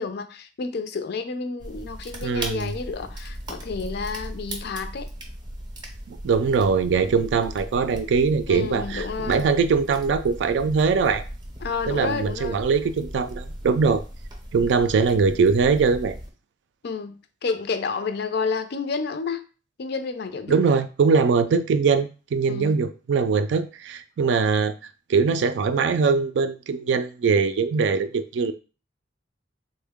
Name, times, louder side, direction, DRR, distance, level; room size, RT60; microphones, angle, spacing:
voice 1, 0.0-5.1 8.5-9.5 11.6-12.6 16.8-17.1 17.4-19.4 19.8-20.6 22.5-22.8, left 4 dB, 60° left, 0.4 m, -30 dB
sound 1, 1.6-16.3, right 1 dB, 25° right, 0.6 m, -37 dB
voice 2, 2.2-2.7 6.1-11.2 11.9-14.0 14.5-16.2 20.5-24.7 25.1-28.5, right 5 dB, 70° right, 0.3 m, -22 dB
3.5 x 2.1 x 3.5 m
head